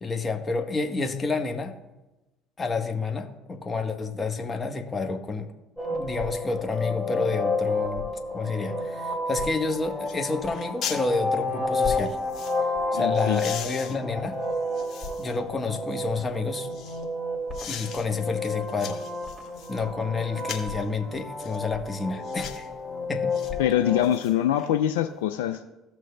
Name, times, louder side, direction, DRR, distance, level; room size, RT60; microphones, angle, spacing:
voice 1, 0.0-1.8 2.6-5.5 5.9-12.2 12.9-14.4 15.2-16.7 17.7-19.0 19.7-22.7 23.1-23.3, left 4 dB, 25° left, 5 dB, 1.1 m, -29 dB
sound 1, 5.8-24.1, left 2 dB, 10° left, 2.5 m, -30 dB
sound 2, 9.5-9.6 10.0-10.2 10.5-11.0 11.8-12.6 13.1-15.4 15.9-17.0 17.5-18.0 18.4-19.8 20.4-20.8 21.4-21.6 22.2-22.7 23.3-23.5 23.9-24.7 25.0-25.1, left 8 dB, 55° left, 1.4 m, -39 dB
voice 2, 12.9-13.4 23.6-25.6, left 11 dB, 85° left, 7 dB, 0.4 m, -24 dB
15.5 x 6.2 x 2.2 m, 1.0 s
hypercardioid pair, 70°, 0 cm